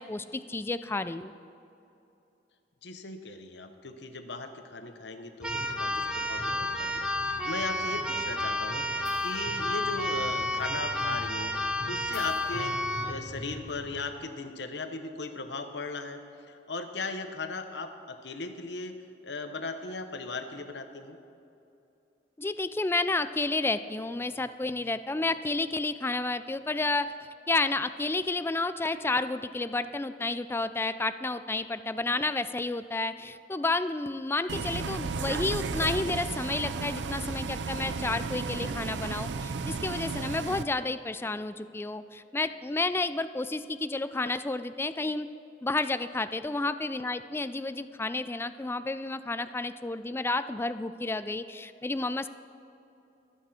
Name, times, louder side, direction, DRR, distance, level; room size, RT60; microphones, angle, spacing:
voice 1, 0.0-1.3 22.4-27.1 27.5-45.3 45.6-52.3, left 2 dB, 15° left, 12 dB, 0.3 m, -31 dB
voice 2, 2.8-11.6 11.9-12.8 13.0-16.2 16.5-19.0 19.2-21.2, left 3 dB, 75° left, 7 dB, 1.1 m, -37 dB
Keyboard (musical), 5.4-13.2, left 1 dB, 5° right, 1.0 m, -31 dB
sound 1, 5.5-14.0, left 1 dB, 35° left, 2.1 m, -44 dB
Bus, 34.5-40.6, right 4 dB, 80° right, 0.6 m, -34 dB
23.5 x 8.5 x 4.3 m, 2.8 s
head